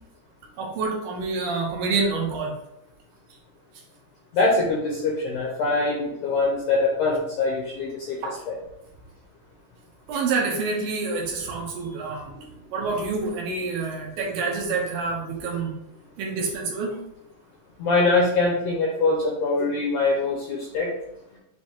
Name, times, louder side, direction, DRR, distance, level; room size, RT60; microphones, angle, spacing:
voice 1, 0.6-2.5 8.2-8.4 10.1-12.3 12.7-15.7 16.2-17.0, right 4 dB, 70° right, -1 dB, 2.5 m, -27 dB
voice 2, 4.3-8.2 8.5-8.6 17.8-20.9, left 3 dB, 75° left, -2 dB, 1.8 m, -23 dB
7.3 x 3.1 x 4.4 m, 0.85 s
omnidirectional pair, 4.8 m